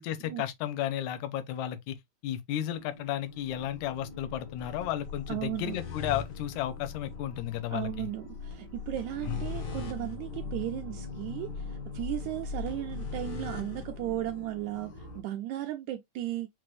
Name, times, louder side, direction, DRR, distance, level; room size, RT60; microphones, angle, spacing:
voice 1, 0.0-2.0 2.2-8.1 9.3-9.5, left 12 dB, 75° left, 2.0 m, -33 dB
sound 1, 2.5-15.2, left 4 dB, 55° left, 1.2 m, -40 dB
voice 2, 5.3-5.8 7.7-16.5, right 13 dB, 80° right, 1.9 m, -35 dB
6.0 x 2.6 x 3.1 m
omnidirectional pair, 3.6 m